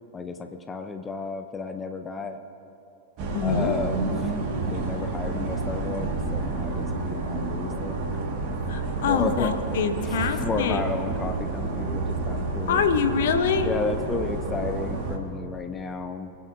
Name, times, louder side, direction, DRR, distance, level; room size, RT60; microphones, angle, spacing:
voice 1, 0.1-2.4 3.4-4.3 4.6-8.0 9.1-9.5 10.0-12.8 13.6-16.3, left 4 dB, 15° left, 7 dB, 0.7 m, -32 dB
sound 1, 3.2-15.2, right 3 dB, 40° right, 1.9 m, -29 dB
voice 2, 3.3-3.8 8.7-10.8 12.7-13.7, left 6 dB, 55° left, 8 dB, 0.9 m, -25 dB
27.0 x 9.6 x 2.8 m, 2.7 s
figure-of-eight pair, 90°, 0 cm